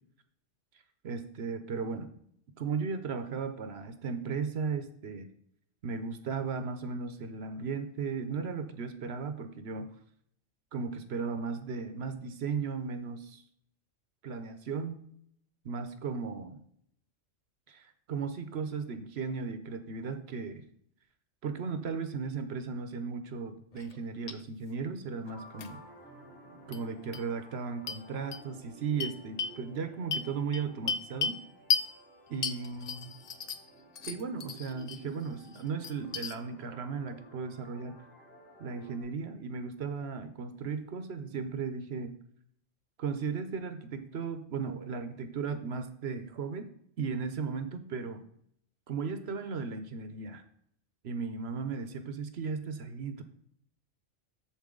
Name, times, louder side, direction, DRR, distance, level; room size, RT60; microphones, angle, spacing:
voice 1, 1.0-2.1 2.6-5.3 5.8-9.9 10.7-13.4 14.2-15.0 15.6-16.6 17.7-20.6 21.4-25.8 26.7-31.4 32.3-33.1 34.1-38.0 38.6-42.2 43.0-46.7 47.0-48.2 48.9-50.4 51.0-53.2, right 5 dB, 55° right, 9 dB, 1.0 m, -36 dB
sound 1, 23.7-24.0 24.3-24.4 25.6-25.7 26.7-26.8 27.1-27.2 27.9-28.0 28.3-28.4 29.0-29.6 30.1-31.4 31.7-31.9 32.4-33.7 34.0-35.0 35.4-36.3, left 6 dB, 65° left, 0.4 m, -34 dB
sound 2, 25.2-39.0, right 1 dB, 80° left, 2.6 m, -53 dB
7.3 x 7.1 x 3.8 m, 0.68 s
omnidirectional pair, 1.4 m